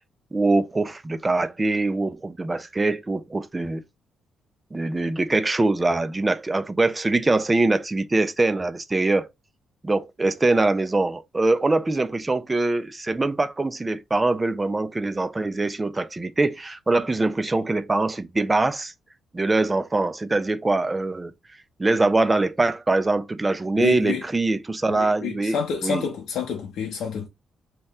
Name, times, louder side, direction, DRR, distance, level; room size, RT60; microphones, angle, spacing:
voice 1, 0.3-3.8 4.7-9.3 9.8-18.9 19.3-21.3 21.8-25.6 25.8-26.1, right 2 dB, 20° right, 0.3 m, -23 dB
voice 2, 23.8-24.2 24.9-27.3, left 7 dB, 85° left, 0.6 m, -28 dB
2.8 x 2.1 x 3.4 m
cardioid pair, 125°, 0 cm